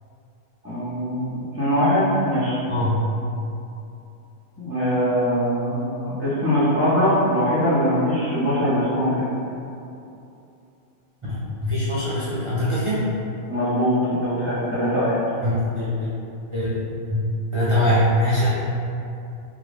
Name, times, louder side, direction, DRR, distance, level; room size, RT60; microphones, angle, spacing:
voice 1, 0.6-2.6 4.6-9.2 13.5-15.2, equal, 15° left, -10 dB, 0.5 m, -22 dB
voice 2, 2.7-3.1 11.3-13.0 15.4-16.1 16.5-16.8 17.1-18.5, left 1 dB, 40° right, -10 dB, 0.4 m, -22 dB
3.6 x 2.5 x 3.3 m, 2.7 s
omnidirectional pair, 1.4 m